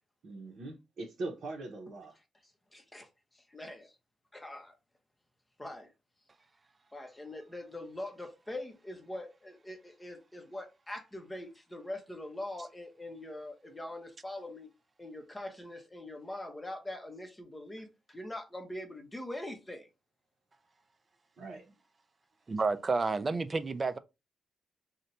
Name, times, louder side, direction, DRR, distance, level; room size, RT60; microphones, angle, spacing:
voice 1, 0.2-2.1 21.4-21.7, right 2 dB, 60° right, 0.7 m, -41 dB
voice 2, 2.4-3.1 3.3-3.9 4.3-4.8 5.6-5.9 6.9-14.7 15.0-19.9, left 1 dB, 15° left, 0.7 m, -43 dB
voice 3, 22.5-24.0, right 3 dB, 30° right, 0.3 m, -30 dB
2.6 x 2.1 x 4.0 m
cardioid pair, 130°, 0 cm